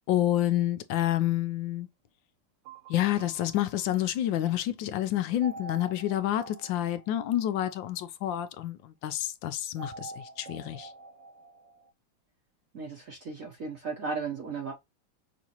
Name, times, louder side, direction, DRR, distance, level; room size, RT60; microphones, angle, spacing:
voice 1, 0.1-1.9 2.9-10.9, left 13 dB, 75° left, 1.3 m, -29 dB
sound 1, 2.7-4.4 5.4-7.9 9.8-11.9, right 2 dB, 80° right, 1.7 m, -46 dB
voice 2, 12.7-14.7, right 4 dB, 50° right, 1.1 m, -35 dB
6.0 x 2.6 x 2.9 m
omnidirectional pair, 2.2 m